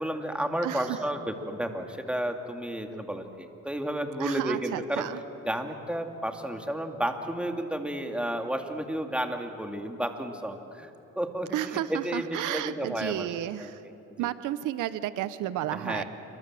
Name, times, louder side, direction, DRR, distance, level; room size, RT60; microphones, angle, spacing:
voice 1, 0.0-5.1 5.5-10.9 11.2-11.6 11.9-13.3 13.6-13.7 14.2-14.3 15.7-16.0, right 1 dB, 5° right, 4 dB, 2.6 m, -32 dB
voice 2, 0.6-1.0 4.2-5.2 11.5-13.8 14.2-16.0, right 13 dB, 90° right, 14 dB, 0.9 m, -32 dB
27.5 x 23.5 x 7.7 m, 2.9 s
cardioid pair, 90°, 30 cm